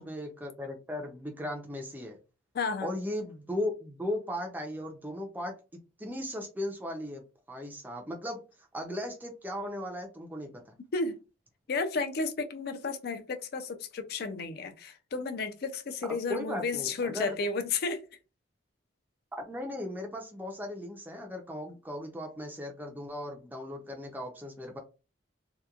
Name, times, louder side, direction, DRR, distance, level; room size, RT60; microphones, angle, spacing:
voice 1, 0.0-2.2 2.8-5.5 6.0-8.4 8.7-10.7 16.3-17.4 19.5-24.8, left 1 dB, 10° right, 0.4 m, -37 dB
voice 2, 2.5-2.9 10.9-11.2 11.7-18.0, left 4 dB, 50° left, 0.4 m, -32 dB
2.8 x 2.1 x 2.3 m
head